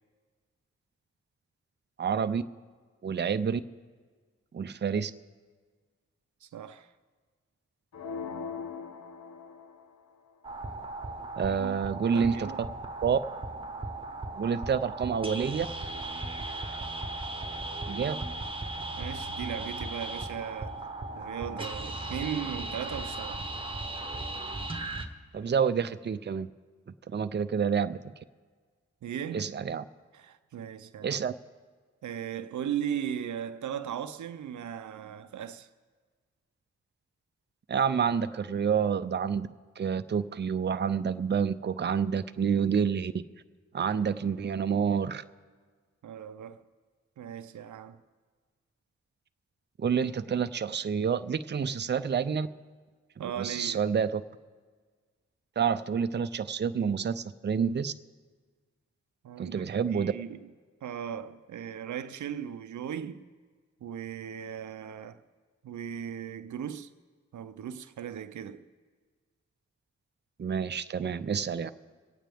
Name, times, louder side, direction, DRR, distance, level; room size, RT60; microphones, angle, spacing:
voice 1, 2.0-2.4 3.0-3.6 4.5-5.1 11.4-12.5 13.0-13.2 14.4-15.7 17.9-18.2 25.3-26.5 27.1-28.0 29.3-29.8 31.0-31.3 37.7-39.5 39.8-43.2 43.7-45.2 49.8-52.5 53.2-54.2 55.6-57.9 59.4-60.1 70.4-71.7, right 6 dB, 40° right, 0.5 m, -28 dB
voice 2, 6.4-6.9 11.5-11.8 12.1-12.7 19.0-20.8 21.1-23.5 29.0-29.5 30.1-31.2 32.0-35.7 46.0-46.6 47.2-48.0 53.2-53.9 59.2-60.5 60.8-63.2 63.8-65.2 65.6-66.9 67.3-68.6, right 9 dB, 85° right, 0.6 m, -37 dB
sound 1, 7.9-10.0, left 5 dB, 70° left, 1.0 m, -40 dB
sound 2, 10.4-25.1, right 2 dB, 20° right, 1.3 m, -37 dB
26.0 x 9.0 x 3.5 m
cardioid pair, 50°, 29 cm